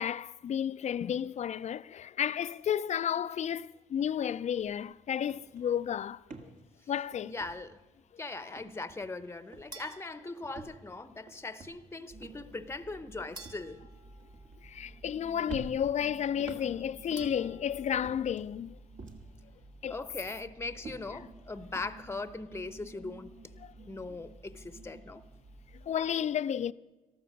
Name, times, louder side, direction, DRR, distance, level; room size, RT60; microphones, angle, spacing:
voice 1, 0.0-6.5 6.9-7.3 14.6-18.8 19.8-19.9 23.6-23.7 25.9-26.7, left 9 dB, 45° left, 0.4 m, -32 dB
sound 1, 4.6-4.8 5.1-8.1 8.4-9.3 9.5-9.9 10.4-15.1 15.5-17.6 18.0-19.4 19.8-21.9, right 3 dB, 55° right, 1.9 m, -49 dB
voice 2, 7.2-7.8 8.2-13.8 19.9-23.4 23.9-25.2, left 3 dB, 15° left, 0.8 m, -40 dB
sound 2, 9.7-11.2 13.4-15.2 17.2-18.3, right 3 dB, 25° right, 1.9 m, -53 dB
sound 3, 12.1-26.0, right 2 dB, 75° right, 2.6 m, -53 dB
13.5 x 12.5 x 6.5 m
supercardioid pair, 65°, 16 cm